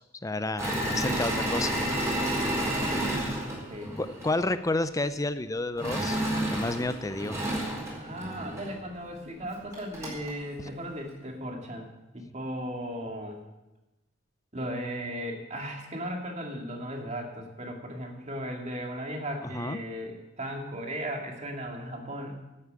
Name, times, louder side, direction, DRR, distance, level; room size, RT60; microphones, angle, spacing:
voice 1, 0.2-1.7 4.0-6.2 6.5-7.4 19.5-19.8, left 2 dB, 15° left, 13 dB, 0.5 m, -30 dB
Engine / Mechanisms, 0.6-4.4 5.8-8.7 9.4-9.5 9.7-10.3, right 1 dB, 15° right, 4.3 m, -30 dB
voice 2, 3.1-3.9 8.0-13.4 14.5-22.4, equal, 35° right, 2 dB, 2.2 m, -36 dB
11.0 x 8.8 x 8.5 m, 1.0 s
head